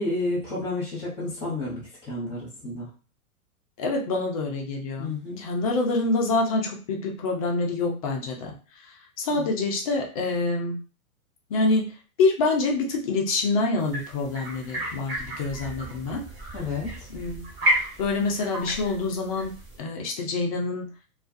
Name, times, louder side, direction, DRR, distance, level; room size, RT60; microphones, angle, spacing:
voice 1, 0.0-2.9 5.0-5.5 9.3-9.4 16.5-17.1, left 2 dB, 10° left, -6 dB, 0.9 m, -31 dB
voice 2, 3.8-5.1 5.4-10.8 11.5-11.9 12.2-16.2 17.1-20.9, left 3 dB, 25° left, 1 dB, 0.4 m, -26 dB
sound 1, 13.9-19.8, equal, 25° right, 1.1 m, -32 dB
2.4 x 2.2 x 2.5 m, 0.37 s
hypercardioid pair, 115°, 45 cm